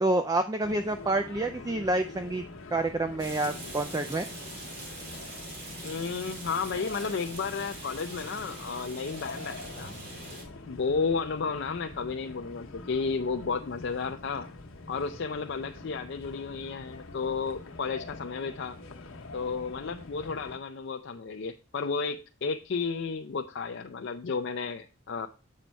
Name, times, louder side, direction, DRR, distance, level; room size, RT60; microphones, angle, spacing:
voice 1, 0.0-2.4 2.7-4.3, right 2 dB, 20° right, 0.3 m, -28 dB
sound 1, 0.6-20.6, left 3 dB, 90° left, 1.0 m, -45 dB
Rain, 3.2-10.4, right 2 dB, 45° right, 2.7 m, -43 dB
voice 2, 5.8-9.9 10.7-14.5 14.9-18.8 19.3-25.3, left 5 dB, 60° left, 0.4 m, -32 dB
7.5 x 5.2 x 4.5 m
head